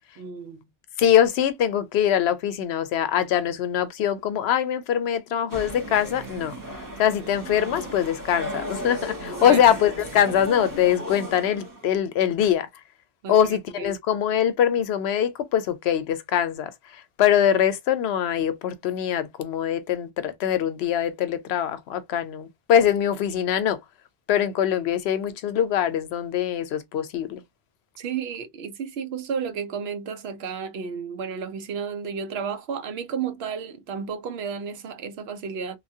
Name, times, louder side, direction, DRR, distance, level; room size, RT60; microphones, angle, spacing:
voice 1, 0.2-0.7 9.4-9.6 13.2-14.0 28.0-35.8, right 6 dB, 80° right, 0.9 m, -32 dB
voice 2, 1.0-6.5 7.0-12.7 13.3-23.8 24.3-27.4, left 9 dB, 90° left, 0.8 m, -23 dB
sound 1, 5.5-11.9, equal, 20° right, 1.0 m, -35 dB
2.9 x 2.3 x 2.6 m
omnidirectional pair, 1.1 m